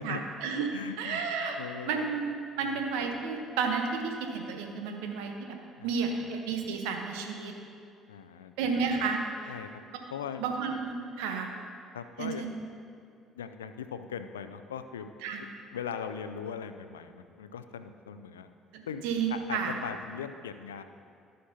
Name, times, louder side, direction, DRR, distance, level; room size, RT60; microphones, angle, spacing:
voice 1, 0.0-0.7 1.0-1.6 1.9-2.3 2.6-5.6 5.8-7.5 8.6-9.5 10.4-11.5 12.2-12.5 15.2-15.4 18.7-19.8, right 5 dB, 75° right, 3 dB, 1.0 m, -32 dB
voice 2, 0.6-1.2 1.6-2.0 2.6-2.8 5.8-5.9 8.1-8.7 9.5-9.8 10.1-10.4 11.9-12.5 13.3-15.1 15.7-18.5 18.9-19.0 19.3-20.8, left 7 dB, 85° left, 9 dB, 0.4 m, -39 dB
15.5 x 6.4 x 2.8 m, 2.4 s
hypercardioid pair, 55°, 0 cm